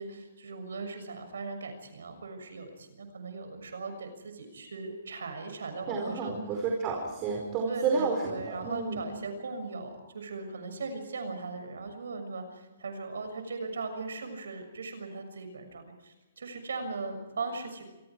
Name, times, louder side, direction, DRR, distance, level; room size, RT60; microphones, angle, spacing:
voice 1, 0.0-6.4 7.7-17.8, right 3 dB, 85° right, 7 dB, 6.6 m, -38 dB
voice 2, 5.9-9.0, right 4 dB, 30° right, 1 dB, 4.9 m, -30 dB
27.5 x 23.5 x 4.8 m, 1.1 s
hypercardioid pair, 150°, 0 cm